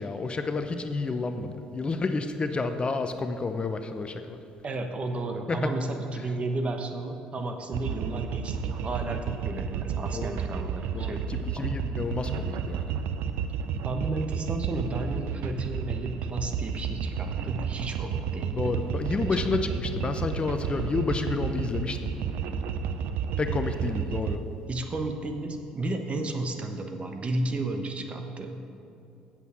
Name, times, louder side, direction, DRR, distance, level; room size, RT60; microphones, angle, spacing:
voice 1, 0.0-4.4 5.5-5.7 6.2-6.3 10.1-10.3 10.9-12.8 18.6-22.1 23.4-24.4, left 3 dB, 30° left, 8 dB, 0.7 m, -30 dB
voice 2, 4.6-11.8 13.8-18.8 19.1-19.5 24.7-28.6, right 2 dB, 35° right, 5 dB, 1.1 m, -33 dB
sound 1, 7.7-24.4, right 7 dB, 65° right, 0.5 m, -31 dB
8.2 x 7.3 x 7.5 m, 2.7 s
hypercardioid pair, 55°, 3 cm